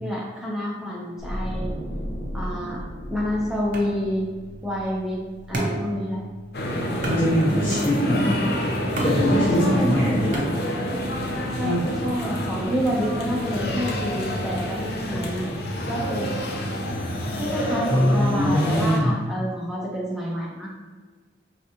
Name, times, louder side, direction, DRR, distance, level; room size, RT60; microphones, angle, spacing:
voice 1, 0.0-1.7 2.3-2.8 3.1-4.3 4.6-5.2 5.5-6.2 9.6-10.2 11.5-15.6 15.9-16.3 17.4-20.7, equal, 5° right, -4 dB, 0.5 m, -28 dB
sound 1, 1.2-6.3 6.6-6.8, equal, 75° left, 1.1 m, -35 dB
sound 2, 3.7-11.1, right 1 dB, 45° right, 0.7 m, -34 dB
sound 3, 6.5-19.0, equal, 60° left, 0.7 m, -28 dB
voice 2, 7.0-8.4 9.0-10.5 11.6-11.8 17.9-19.2, equal, 30° left, -11 dB, 0.9 m, -21 dB
4.7 x 3.2 x 2.8 m, 1.4 s
head